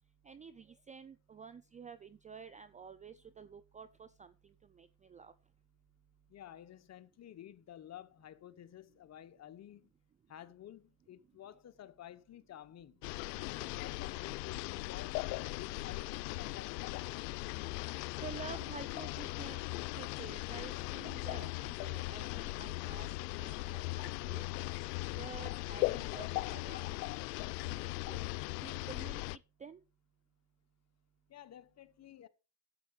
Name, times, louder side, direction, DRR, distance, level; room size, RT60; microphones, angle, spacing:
voice 1, 0.2-5.3 18.2-19.6 19.9-24.4 25.2-26.9 27.6-28.2 28.6-29.8, right 6 dB, 15° right, 0.4 m, -50 dB
voice 2, 6.3-9.9 10.3-13.0 13.4-17.0 31.3-32.3, left 11 dB, 30° left, 1.0 m, -52 dB
sound 1, 13.0-29.4, left 21 dB, 80° left, 0.6 m, -39 dB
11.5 x 7.6 x 4.8 m
supercardioid pair, 105°, 49 cm